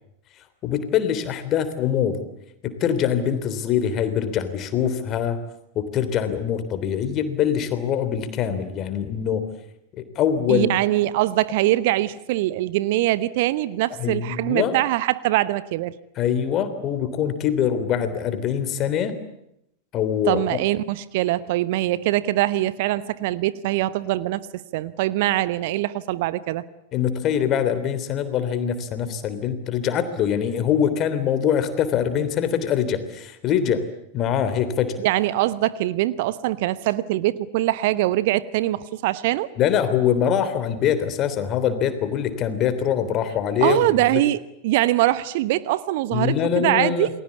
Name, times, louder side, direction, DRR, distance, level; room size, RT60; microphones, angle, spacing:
voice 1, 0.6-2.2 2.6-5.4 5.7-9.4 10.0-10.7 14.0-14.8 16.2-19.1 19.9-20.6 26.9-33.9 34.1-35.0 39.6-44.2 46.1-47.1, left 8 dB, 35° left, 11 dB, 3.4 m, -23 dB
voice 2, 10.5-16.0 20.3-26.6 35.0-39.5 43.6-47.1, right 16 dB, 50° right, 17 dB, 1.0 m, -23 dB
29.0 x 21.0 x 8.4 m, 0.79 s
figure-of-eight pair, 90°, 0 cm